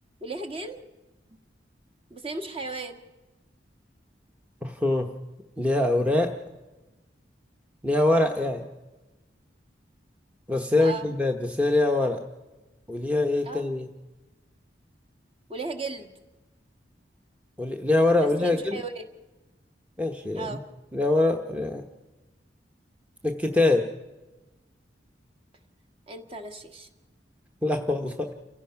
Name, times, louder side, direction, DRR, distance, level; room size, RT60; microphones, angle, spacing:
voice 1, 0.2-0.9 2.1-3.0 10.8-11.1 13.4-13.7 15.5-16.1 18.2-19.0 20.3-20.6 26.1-26.9, right 3 dB, 30° right, 4 dB, 1.5 m, -35 dB
voice 2, 4.6-5.1 5.6-6.3 7.8-8.7 10.5-12.2 12.9-13.9 17.6-18.8 20.0-20.6 20.9-21.8 23.2-23.9 27.6-28.3, left 2 dB, 10° right, 3 dB, 0.9 m, -24 dB
29.0 x 16.5 x 5.8 m, 1.1 s
head